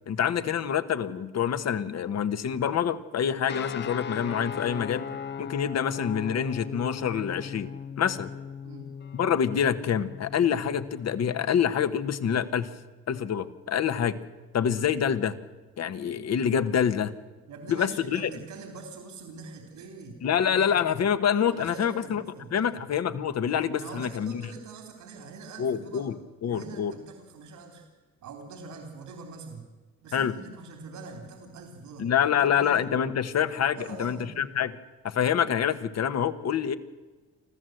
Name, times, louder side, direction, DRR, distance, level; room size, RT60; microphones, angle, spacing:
voice 1, 0.1-5.1 5.4-7.7 8.0-8.3 9.1-12.7 13.1-14.2 14.5-15.3 15.8-17.1 17.7-18.3 20.2-22.2 22.5-24.4 25.6-26.2 26.4-26.9 30.1-30.3 32.0-34.8 35.0-36.7, left 8 dB, 60° left, 11 dB, 1.3 m, -26 dB
sound 1, 3.5-12.4, left 7 dB, 35° left, 0.6 m, -39 dB
voice 2, 17.5-20.6 21.5-22.8 23.7-26.1 26.4-27.9 28.2-29.7 30.0-32.8 33.7-34.3, right 4 dB, 80° right, 4 dB, 3.4 m, -44 dB
25.5 x 14.5 x 7.8 m, 1.3 s
cardioid pair, 90°, 30 cm